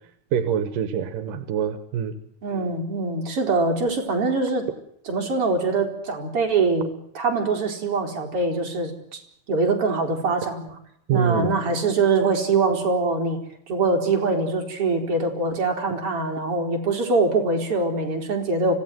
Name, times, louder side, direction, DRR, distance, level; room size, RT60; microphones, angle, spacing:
voice 1, 0.3-2.2 11.1-11.5, right 7 dB, 80° right, 11 dB, 2.9 m, -25 dB
voice 2, 2.4-4.7 5.1-6.9 7.1-8.9 9.5-10.8 11.1-13.4 13.7-18.8, right 3 dB, 40° right, 2 dB, 4.9 m, -23 dB
25.5 x 16.5 x 9.2 m, 0.71 s
omnidirectional pair, 3.8 m